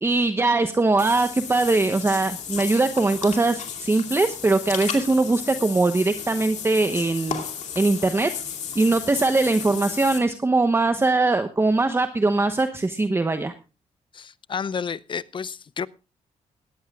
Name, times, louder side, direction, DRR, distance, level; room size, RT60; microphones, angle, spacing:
voice 1, 0.0-7.4 7.8-8.3 8.7-13.5, right 3 dB, 20° right, 1.0 m, -21 dB
Water / Bathtub (filling or washing), 1.0-10.2, left 8 dB, 70° left, 2.6 m, -34 dB
voice 2, 14.1-15.9, left 6 dB, 40° left, 0.6 m, -31 dB
19.0 x 14.5 x 2.3 m
cardioid pair, 105°, 13 cm